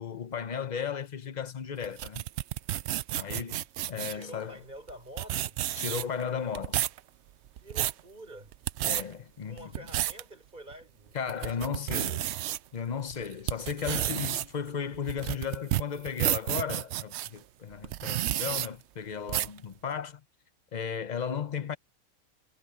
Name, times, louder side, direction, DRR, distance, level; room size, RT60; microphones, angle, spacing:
voice 1, 0.0-2.2 3.1-3.6 3.9-4.6 5.7-6.8 8.8-9.9 11.1-12.2 12.7-20.2 20.7-21.8, left 7 dB, 40° left, 0.7 m, -35 dB
sound 1, 1.8-4.2 4.9-5.0 5.2-6.2 6.5-7.0 7.5-8.0 8.5-9.0 9.6-10.2 10.7-10.8 11.3-12.6 13.1-17.3 17.8-18.7 19.3-19.6, right 13 dB, 65° right, 0.7 m, -31 dB
voice 2, 3.9-5.6 7.6-8.5 9.4-12.1, right 1 dB, 30° right, 6.5 m, -48 dB
omnidirectional pair, 1.5 m